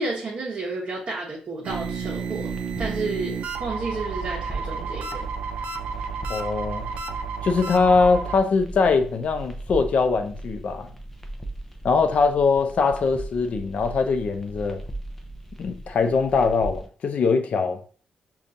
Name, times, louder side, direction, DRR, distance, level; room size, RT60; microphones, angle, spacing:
voice 1, 0.0-2.5 2.8-5.3, right 3 dB, 45° right, 0.8 m, -31 dB
sound 1, 1.6-8.4, right 5 dB, 80° right, 0.4 m, -32 dB
sound 2, 1.7-16.9, right 1 dB, 10° left, 0.5 m, -38 dB
voice 2, 6.3-6.9 7.4-10.9 11.8-14.8 15.6-17.8, left 4 dB, 60° left, 0.5 m, -22 dB
5.2 x 2.3 x 2.6 m
cardioid pair, 110°, 3 cm